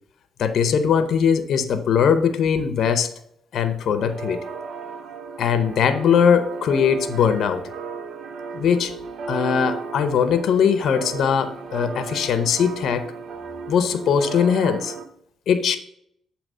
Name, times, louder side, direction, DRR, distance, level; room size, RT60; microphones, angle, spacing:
voice 1, 0.4-3.1 3.5-4.4 5.4-7.7 8.5-8.9 9.3-13.1 13.7-14.9 15.5-15.8, left 7 dB, 65° left, 10 dB, 0.6 m, -20 dB
sound 1, 4.0-15.1, right 4 dB, 65° right, 0.6 m, -35 dB
7.3 x 2.9 x 5.4 m, 0.70 s
cardioid pair, 90°, 0 cm